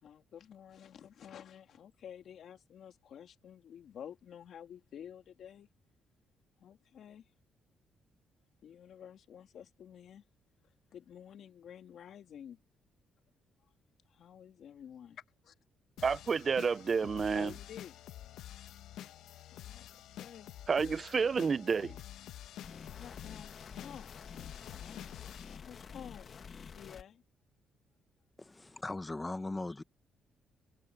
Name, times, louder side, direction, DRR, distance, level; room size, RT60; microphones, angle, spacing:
voice 1, 0.0-5.7 6.6-7.3 8.6-10.2 10.9-12.6 14.1-15.5 17.3-18.0 19.5-20.5 22.9-24.1 24.8-25.2 25.6-26.3 26.7-27.2, left 9 dB, 65° left, 2.8 m, -51 dB
sound 1, 16.0-25.6, left 12 dB, 85° left, 1.3 m, -49 dB
voice 2, 16.0-17.5 20.7-22.0, right 5 dB, 40° right, 0.5 m, -30 dB
sound 2, 22.6-27.0, left 6 dB, 50° left, 1.1 m, -49 dB
voice 3, 28.4-29.8, left 2 dB, 20° left, 1.0 m, -39 dB
cardioid pair, 90°, 0 cm